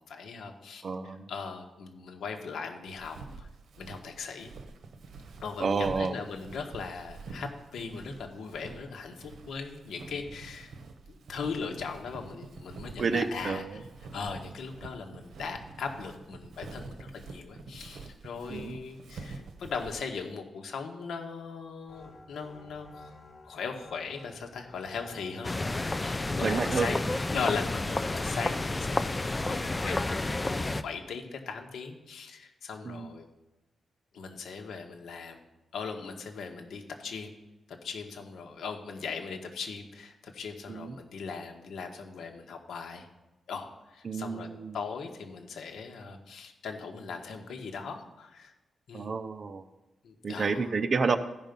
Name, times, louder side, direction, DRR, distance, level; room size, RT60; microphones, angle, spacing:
voice 1, 0.1-3.5 3.8-4.5 5.4-10.7 11.1-13.8 14.1-23.1 23.4-27.0 27.3-33.3 34.1-35.4 35.7-37.3 37.7-43.1 43.5-44.5 44.7-48.5 48.9-49.1 50.0-50.7, left 5 dB, 80° left, 4 dB, 1.5 m, -39 dB
voice 2, 0.8-1.3 5.6-6.2 13.0-13.8 18.5-18.8 26.4-26.9 32.8-33.2 40.7-41.0 44.0-44.8 48.9-49.6 50.2-51.2, right 4 dB, 40° right, 11 dB, 0.6 m, -30 dB
Walk footsteps, 2.9-20.2, right 3 dB, 70° right, 1.0 m, -47 dB
sound 1, 21.9-29.3, left 2 dB, 40° left, 1.9 m, -51 dB
sound 2, 25.4-30.8, left 2 dB, 15° left, 0.4 m, -30 dB
15.0 x 5.8 x 5.3 m, 1.1 s
wide cardioid pair, 165°, 0 cm